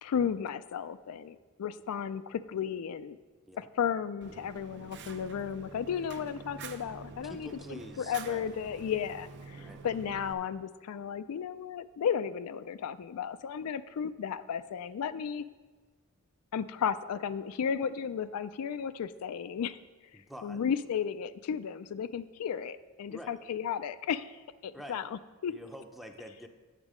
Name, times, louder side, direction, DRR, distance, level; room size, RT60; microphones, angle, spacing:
voice 1, 0.0-3.2 3.6-15.5 16.5-19.8 20.4-25.5, left 7 dB, 75° left, 13 dB, 0.3 m, -34 dB
Fire, 4.2-10.3, right 4 dB, 50° right, 0.6 m, -47 dB
voice 2, 7.2-8.5 9.6-9.9 20.1-20.6 23.1-23.4 24.7-25.0 25.5-26.5, equal, ahead, 5 dB, 0.6 m, -47 dB
8.9 x 7.2 x 4.9 m, 1.3 s
head